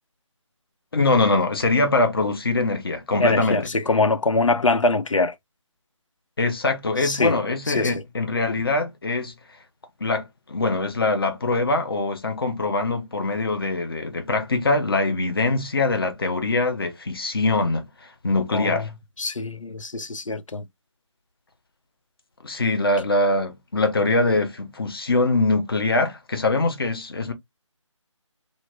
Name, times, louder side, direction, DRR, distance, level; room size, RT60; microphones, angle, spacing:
voice 1, 0.9-3.6 6.4-9.3 10.0-17.9 18.2-18.9 22.4-27.3, left 2 dB, 45° left, 0.8 m, -23 dB
voice 2, 3.2-5.3 7.0-8.0 18.5-18.9 19.2-20.7, left 3 dB, 80° left, 0.6 m, -23 dB
3.2 x 2.3 x 3.5 m
figure-of-eight pair, 155°, 16 cm